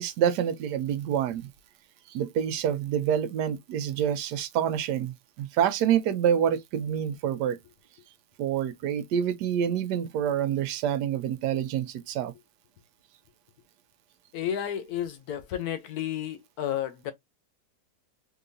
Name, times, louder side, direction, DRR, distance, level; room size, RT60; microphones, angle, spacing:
voice 1, 0.0-1.5 2.1-7.6 8.4-12.3, right 9 dB, 90° right, 1.2 m, -27 dB
voice 2, 14.3-17.1, left 10 dB, 75° left, 1.2 m, -32 dB
3.8 x 2.9 x 2.6 m
omnidirectional pair, 1.7 m